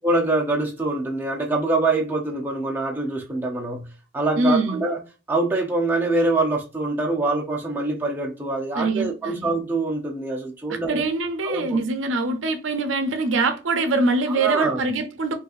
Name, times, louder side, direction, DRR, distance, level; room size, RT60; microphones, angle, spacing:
voice 1, 0.0-3.8 4.1-5.0 5.3-11.0 11.4-11.8 14.3-14.9, right 2 dB, 10° right, 0.5 m, -24 dB
voice 2, 4.4-4.8 8.7-9.5 10.7-15.3, right 2 dB, 85° right, 0.6 m, -23 dB
3.9 x 2.4 x 2.4 m
head